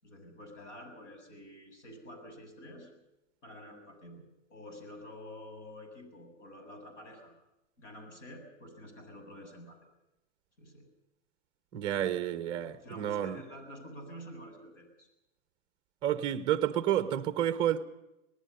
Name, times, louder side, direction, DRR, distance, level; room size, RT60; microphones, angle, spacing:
voice 1, 0.0-2.9 3.4-4.2 4.5-7.3 7.8-9.8 10.6-10.9 12.7-15.1, equal, 85° left, 7.7 m, -48 dB
voice 2, 11.7-13.4 16.0-17.8, right 11 dB, 15° right, 0.7 m, -30 dB
26.0 x 19.5 x 5.4 m
supercardioid pair, 175°, 36 cm